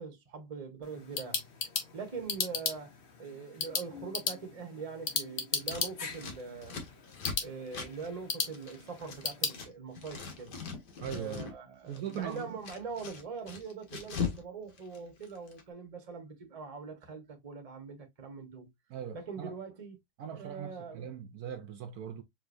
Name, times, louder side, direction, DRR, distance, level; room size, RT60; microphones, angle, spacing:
voice 1, 0.0-1.4 1.9-2.9 3.2-6.8 7.4-10.6 11.1-18.7 19.1-20.0 20.3-21.1, right 5 dB, 25° right, 1.0 m, -42 dB
sound 1, 0.8-9.6, left 5 dB, 45° left, 1.1 m, -37 dB
Scissors, 5.6-9.7 9.9-11.6 11.9-14.4 14.7-15.6, left 6 dB, 80° left, 1.8 m, -41 dB
voice 2, 11.0-11.5 11.9-12.5 18.9-19.5 20.2-22.2, right 9 dB, 70° right, 1.1 m, -40 dB
4.8 x 3.4 x 2.5 m
omnidirectional pair, 1.8 m